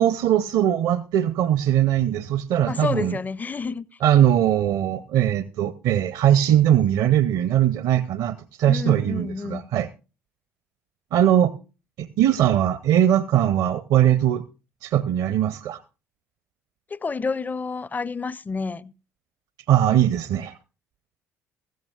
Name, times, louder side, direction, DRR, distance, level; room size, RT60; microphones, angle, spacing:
voice 1, 0.0-3.1 4.0-9.9 11.1-11.5 12.0-14.4 14.8-15.8 19.7-20.5, right 11 dB, 55° right, 0.6 m, -20 dB
voice 2, 2.6-3.9 8.7-9.7 16.9-18.9, left 4 dB, 20° left, 0.5 m, -29 dB
15.5 x 14.5 x 2.3 m
figure-of-eight pair, 50°, 8 cm